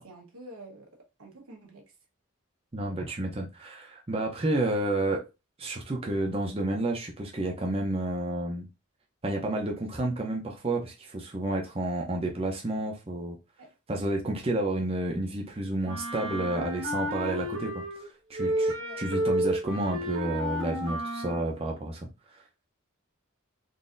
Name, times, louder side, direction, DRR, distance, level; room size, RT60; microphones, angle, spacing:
voice 1, 0.0-0.9 1.2-1.8 13.6-13.7 18.8-19.0, right 1 dB, 85° right, 1.2 m, -47 dB
voice 2, 2.7-5.2 5.6-8.7 9.2-13.4 13.9-22.4, right 1 dB, 25° right, 0.6 m, -30 dB
Wind instrument woodwind instrument, 15.8-18.1 18.3-21.5, right 1 dB, 70° right, 1.3 m, -31 dB
3.9 x 2.7 x 2.5 m
head